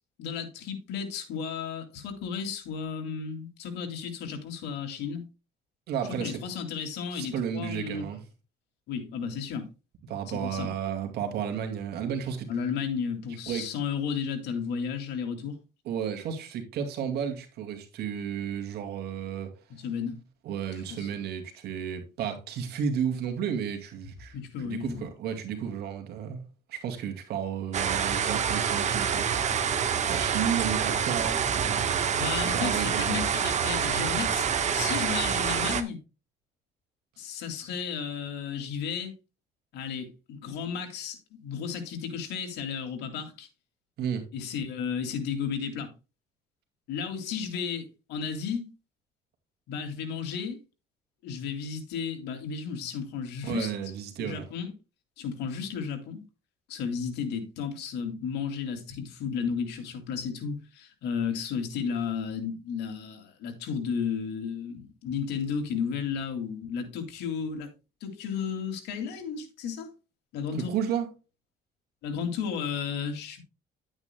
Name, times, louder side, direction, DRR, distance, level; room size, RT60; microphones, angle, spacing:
voice 1, 0.2-5.2 6.2-8.0 8.9-9.7 10.3-10.7 12.5-15.6 19.7-20.2 20.9-21.1 24.3-25.0 32.2-36.0 37.2-39.1 39.7-43.5 44.3-45.9 46.9-48.7 49.7-50.6 51.2-53.7 54.2-54.7 55.2-56.2 56.7-67.7 68.0-69.9 70.3-70.8 72.0-73.4, left 6 dB, 80° left, 2.5 m, -33 dB
voice 2, 5.9-6.4 7.1-8.2 10.1-12.5 13.5-13.6 15.8-19.5 20.4-24.3 24.6-33.3 44.0-44.2 53.4-54.5 70.6-71.1, right 8 dB, 70° right, 2.3 m, -33 dB
sound 1, 27.7-35.8, right 7 dB, 45° right, 1.2 m, -27 dB
11.0 x 8.7 x 2.2 m
cardioid pair, 110°, 17 cm